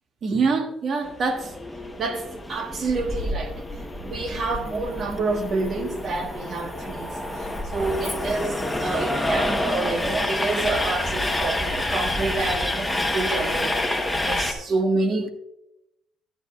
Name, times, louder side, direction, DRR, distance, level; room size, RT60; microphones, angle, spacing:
voice 1, 0.2-1.5 2.0-3.5 4.0-7.1 7.7-15.3, right 3 dB, 45° right, 1.3 m, -27 dB
Train, 1.1-14.5, left 1 dB, 5° left, 1.0 m, -28 dB
11.0 x 10.5 x 2.3 m
cardioid pair, 120°, 0 cm